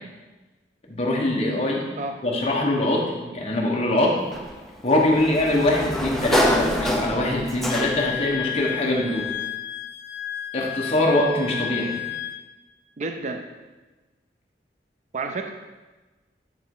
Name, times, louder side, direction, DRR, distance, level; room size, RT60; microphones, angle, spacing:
voice 1, 0.9-1.9 2.2-4.2 4.8-9.3 10.5-11.9, left 1 dB, 35° left, -2 dB, 1.3 m, -23 dB
Sliding door, 4.3-8.2, equal, ahead, 0.6 m, -26 dB
Wind instrument woodwind instrument, 7.7-12.4, left 11 dB, 75° left, 0.6 m, -32 dB
voice 2, 13.0-13.5 15.1-15.5, right 3 dB, 45° right, 5 dB, 0.4 m, -30 dB
10.0 x 3.5 x 4.9 m, 1.2 s
head